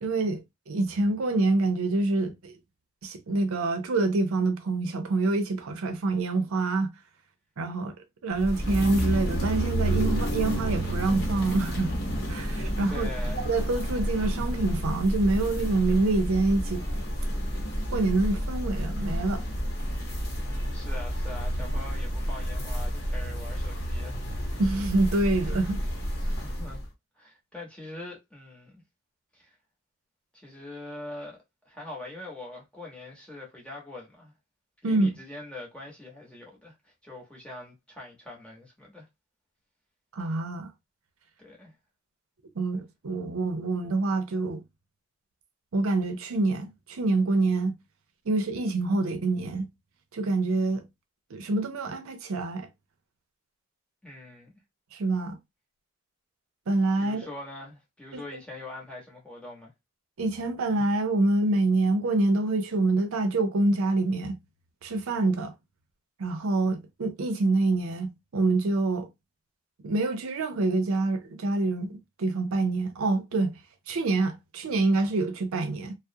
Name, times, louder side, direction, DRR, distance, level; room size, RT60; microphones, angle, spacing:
voice 1, 0.0-2.5 3.0-6.9 7.6-7.9 8.2-11.9 12.3-13.1 13.5-16.8 17.9-19.4 24.6-25.8 34.8-35.1 40.1-40.7 42.6-44.6 45.7-47.8 48.3-49.7 50.1-50.8 51.3-52.7 54.9-55.4 56.7-57.2 58.1-58.2 60.2-64.4 64.8-65.5 66.2-69.1 69.8-73.5 73.9-76.0, right 2 dB, 90° right, 0.5 m, -26 dB
sound 1, 8.3-26.9, equal, 45° left, 0.8 m, -30 dB
voice 2, 12.9-13.5 20.4-24.2 26.2-26.9 27.2-28.8 29.3-29.5 30.3-31.4 31.7-34.3 34.8-39.1 41.4-41.7 54.0-54.5 57.0-59.7, left 2 dB, 5° left, 0.8 m, -43 dB
2.3 x 2.0 x 2.6 m
head